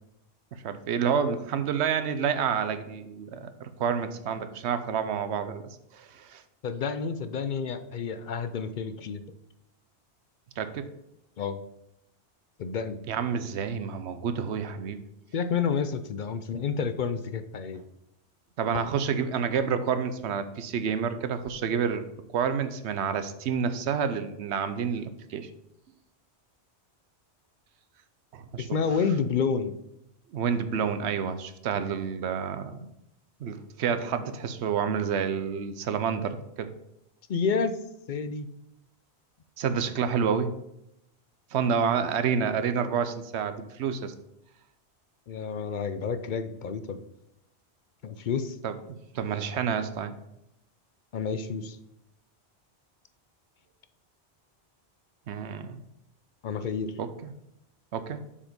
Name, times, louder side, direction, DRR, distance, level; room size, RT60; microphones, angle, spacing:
voice 1, 0.5-5.6 5.9-6.4 10.6-10.9 13.1-15.0 18.6-22.0 22.3-25.5 28.3-28.7 30.3-32.8 33.4-36.7 39.6-40.5 41.5-44.1 48.6-50.1 55.3-55.8 57.0-57.3 57.9-58.2, right 7 dB, 80° right, 11 dB, 1.0 m, -29 dB
voice 2, 6.6-9.2 11.4-11.6 12.6-13.0 15.3-17.8 18.7-18.8 28.6-29.7 37.3-37.8 38.1-38.5 45.3-47.0 48.0-48.6 51.1-51.8 56.4-56.9, left 6 dB, 55° left, 10 dB, 0.6 m, -29 dB
7.0 x 5.0 x 5.2 m, 0.83 s
omnidirectional pair, 1.1 m